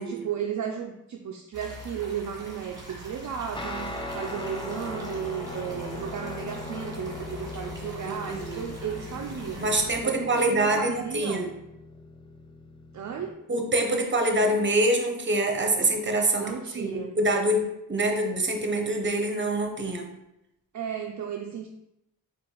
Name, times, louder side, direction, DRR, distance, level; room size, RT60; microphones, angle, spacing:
voice 1, 0.0-9.6 10.0-11.5 12.9-13.4 16.4-17.1 20.7-21.7, right 7 dB, 55° right, 2 dB, 0.5 m, -34 dB
sound 1, 1.5-9.9, equal, 10° right, 1.3 m, -42 dB
Guitar, 3.6-13.3, left 2 dB, 15° left, 0.6 m, -40 dB
voice 2, 8.1-8.7 9.6-11.5 13.5-17.6 17.9-20.1, right 1 dB, 30° right, 4 dB, 0.8 m, -25 dB
4.5 x 2.5 x 3.9 m, 0.84 s
cardioid pair, 60°, 35 cm